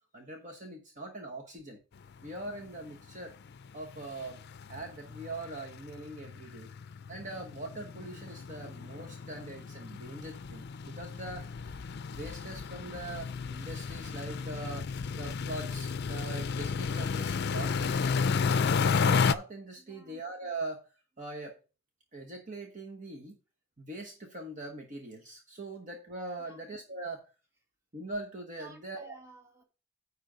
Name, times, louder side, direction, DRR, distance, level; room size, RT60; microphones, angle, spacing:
voice 1, 0.1-1.8 2.2-3.3 3.7-4.4 4.7-6.7 7.1-11.5 12.1-14.9 15.2-18.3 19.0-20.8 21.2-21.6 22.1-23.4 23.8-27.2 27.9-29.1, right 2 dB, 40° right, 1.2 m, -42 dB
sound 1, 2.2-2.3 2.6-2.8 3.1-3.2 3.5-19.3, left 5 dB, 55° left, 0.5 m, -32 dB
voice 2, 19.8-20.2 26.4-26.6 28.6-29.6, right 2 dB, 15° right, 2.1 m, -54 dB
9.8 x 3.4 x 6.6 m
head